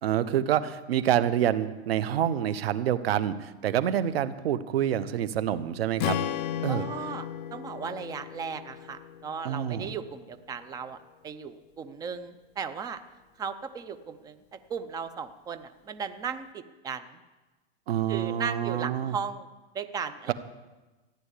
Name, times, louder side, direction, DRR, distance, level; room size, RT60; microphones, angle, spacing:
voice 1, 0.0-6.2 6.6-6.9 9.4-9.9 17.9-19.2 20.3-20.4, right 10 dB, 75° right, 14 dB, 1.1 m, -27 dB
Strum, 6.0-10.3, left 10 dB, 40° left, 0.7 m, -35 dB
voice 2, 6.7-11.0 11.2-13.0 13.4-17.2 18.1-19.5 19.7-20.3, right 6 dB, 10° right, 11 dB, 0.6 m, -36 dB
15.0 x 9.3 x 8.4 m, 1.2 s
supercardioid pair, 150°, 30 cm